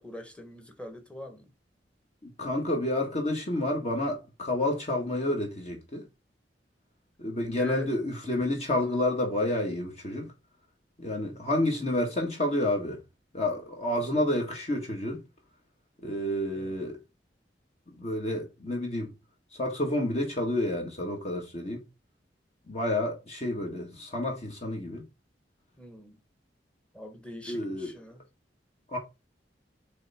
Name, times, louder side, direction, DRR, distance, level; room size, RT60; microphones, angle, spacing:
voice 1, 0.0-1.5 7.6-7.9 11.2-11.4 16.5-16.8 25.8-26.2 26.9-28.2, left 1 dB, 5° left, 1.2 m, -43 dB
voice 2, 2.2-6.0 7.2-10.3 11.0-13.0 13.3-15.2 16.0-17.0 18.0-19.1 19.6-21.8 22.7-25.0 27.5-27.9 28.9-29.0, left 1 dB, 40° left, 1.7 m, -29 dB
7.8 x 3.5 x 4.3 m
head